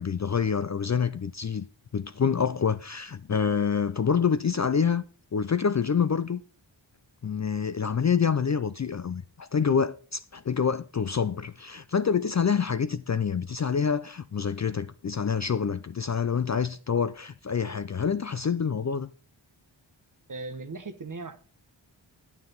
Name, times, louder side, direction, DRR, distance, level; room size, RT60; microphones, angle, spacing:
voice 1, 0.0-1.7 1.9-5.0 5.3-6.4 7.2-19.1, left 6 dB, 40° left, 0.4 m, -27 dB
voice 2, 20.3-21.4, right 3 dB, 40° right, 1.0 m, -38 dB
9.6 x 9.0 x 3.9 m
wide cardioid pair, 65°, 47 cm